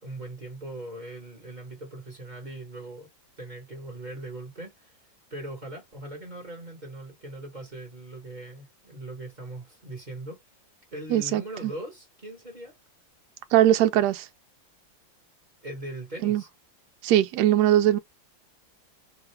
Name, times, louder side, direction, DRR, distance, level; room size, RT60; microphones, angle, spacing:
voice 1, 0.0-3.1 3.4-4.9 5.3-10.4 10.9-12.8 15.6-16.5, right 1 dB, 30° right, 1.1 m, -40 dB
voice 2, 11.1-11.7 13.5-14.3 16.2-16.4 17.0-18.0, right 12 dB, 75° right, 1.0 m, -21 dB
3.7 x 2.3 x 3.2 m
omnidirectional pair, 2.1 m